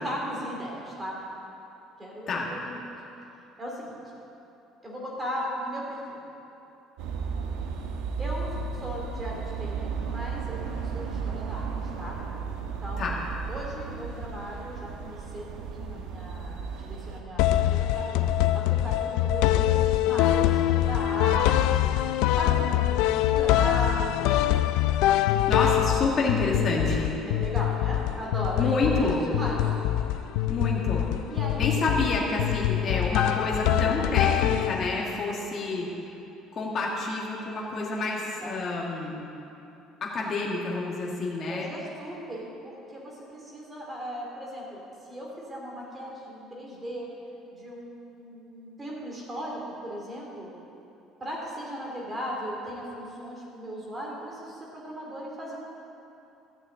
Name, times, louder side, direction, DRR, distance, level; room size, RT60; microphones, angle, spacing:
voice 1, 0.0-1.2 2.0-2.8 3.6-3.9 4.8-6.2 8.2-8.5 8.8-11.7 12.0-12.2 12.6-13.1 13.5-18.1 18.5-19.8 20.0-21.9 22.4-24.5 27.2-29.7 31.3-31.8 38.4-38.5 41.5-44.8 45.1-47.1 47.5-50.5 51.2-55.6, equal, 15° right, -3 dB, 2.6 m, -37 dB
sound 1, 7.0-17.2, right 5 dB, 90° right, 1.2 m, -34 dB
sound 2, 17.4-35.2, left 12 dB, 75° left, 0.4 m, -24 dB
voice 2, 25.5-27.2 28.6-29.3 30.5-31.0 31.6-35.9 36.5-39.2 40.0-41.7, left 3 dB, 30° left, -3 dB, 2.0 m, -28 dB
13.5 x 6.8 x 8.5 m, 2.9 s
cardioid pair, 175°, 0 cm